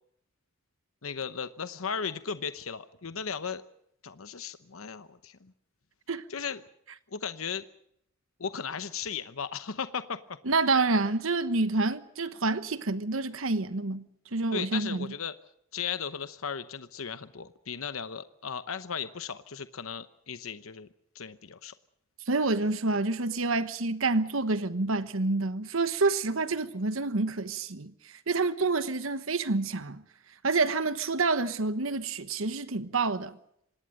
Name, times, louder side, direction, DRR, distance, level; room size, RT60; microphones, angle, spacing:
voice 1, 1.0-3.6 4.0-5.5 6.3-6.6 7.1-7.7 8.4-10.4 14.5-15.3 15.7-20.9 21.1-21.7, left 6 dB, 90° left, 0.9 m, -36 dB
voice 2, 10.5-15.1 22.3-30.0 30.4-33.4, right 3 dB, 80° right, 1.2 m, -28 dB
26.0 x 19.0 x 6.5 m
head